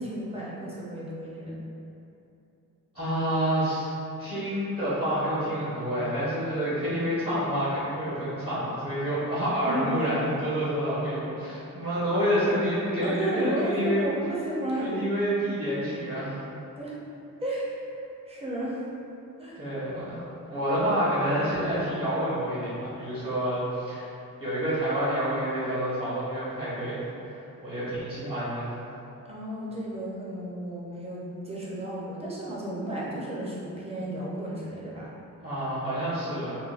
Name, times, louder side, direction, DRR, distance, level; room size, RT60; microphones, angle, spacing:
voice 1, 0.0-1.6 9.7-10.0 13.0-14.9 16.7-17.0 17.4-17.8 18.3-18.8 19.4-19.6 29.2-35.1, right 1 dB, 20° right, -6 dB, 0.6 m, -33 dB
voice 2, 2.9-3.9 4.2-14.0 14.8-16.4 19.6-20.2 20.5-24.1 24.4-27.0 27.3-28.7 35.4-36.5, equal, 40° right, -12 dB, 1.0 m, -28 dB
3.7 x 2.1 x 2.4 m, 2.8 s
wide cardioid pair, 135°, 34 cm